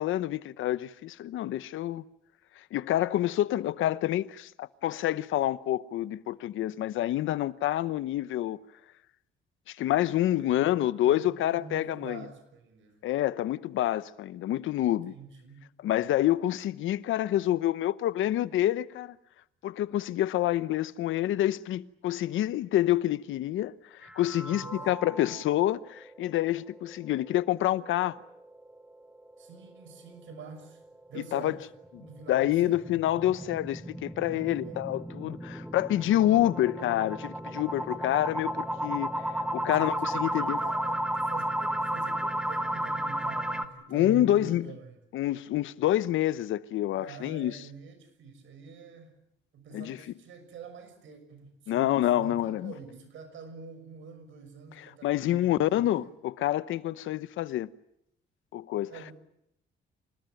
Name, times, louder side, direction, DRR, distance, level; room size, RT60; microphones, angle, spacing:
voice 1, 0.0-2.0 2.6-8.6 9.7-12.3 13.0-15.1 15.8-19.2 19.6-28.2 31.3-31.6 32.3-39.1 39.5-40.6 43.9-44.7 45.1-47.6 49.7-50.0 51.7-52.7 55.0-57.7 58.5-58.9, left 13 dB, 80° left, 0.9 m, -27 dB
voice 2, 10.3-10.8 11.0-13.0 15.0-15.7 24.4-25.0 29.4-30.8 31.1-31.7 32.0-32.8 34.2-34.9 39.6-45.0 47.0-49.1 49.5-56.1 58.9-59.1, right 5 dB, 75° right, 6.3 m, -46 dB
sound 1, 24.0-25.5 25.9-26.0 26.4-26.5 26.9-27.0 31.8-43.6, right 1 dB, 5° right, 1.9 m, -33 dB
26.5 x 19.5 x 9.1 m
cardioid pair, 90°, 20 cm